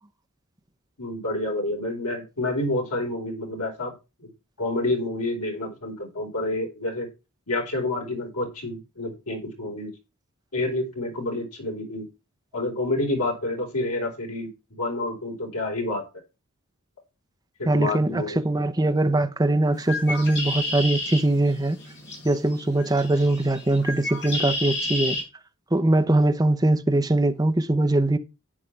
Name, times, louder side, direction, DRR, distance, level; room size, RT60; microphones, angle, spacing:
voice 1, 1.0-3.9 4.2-4.3 4.6-7.1 7.5-9.9 10.5-12.0 12.5-16.0 17.6-18.4 26.0-26.1, left 2 dB, 85° left, 4.7 m, -28 dB
voice 2, 17.7-21.8 22.2-25.2 25.7-28.2, right 2 dB, 15° right, 0.8 m, -22 dB
Bird, 19.7-25.2, left 2 dB, 55° left, 6.1 m, -32 dB
11.0 x 9.9 x 3.4 m
head